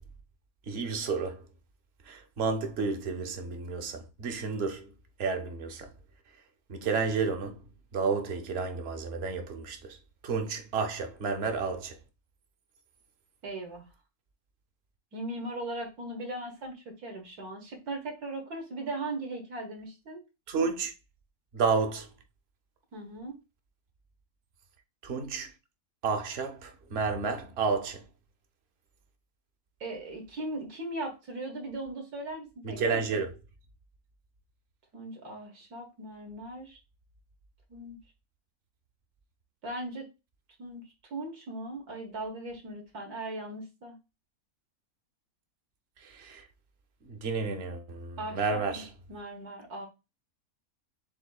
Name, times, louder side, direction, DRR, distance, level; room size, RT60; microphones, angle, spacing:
voice 1, 0.7-1.4 2.1-4.9 5.2-5.9 6.7-7.6 7.9-10.0 10.2-12.0 20.5-20.9 21.5-22.1 25.0-25.5 26.0-28.0 32.6-33.4 46.0-46.4 47.1-48.9, right 4 dB, 55° right, 0.8 m, -31 dB
voice 2, 13.4-13.8 15.1-20.2 22.9-23.4 29.8-33.1 34.9-36.8 37.7-38.0 39.6-40.1 40.6-40.8 41.1-44.0 48.2-48.8 49.1-49.9, right 2 dB, 90° right, 1.9 m, -38 dB
7.2 x 2.7 x 2.3 m
omnidirectional pair, 1.6 m